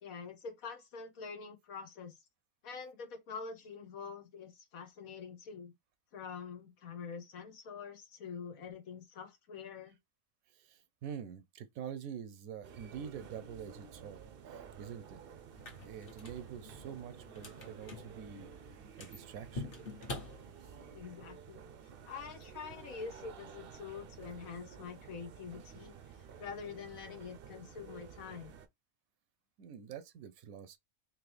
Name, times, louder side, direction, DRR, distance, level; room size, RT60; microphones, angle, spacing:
voice 1, 0.0-2.2 2.6-5.7 6.1-10.0 20.9-21.7 22.0-25.9 26.4-28.5, left 5 dB, 85° left, 1.4 m, -46 dB
voice 2, 10.5-14.2 14.5-15.2 15.8-18.5 19.0-19.7 29.6-30.8, right 8 dB, 85° right, 1.0 m, -46 dB
sound 1, 12.6-28.7, right 7 dB, 60° right, 0.6 m, -52 dB
sound 2, 15.5-21.0, left 3 dB, 45° left, 1.1 m, -47 dB
3.8 x 2.9 x 3.2 m
omnidirectional pair, 1.4 m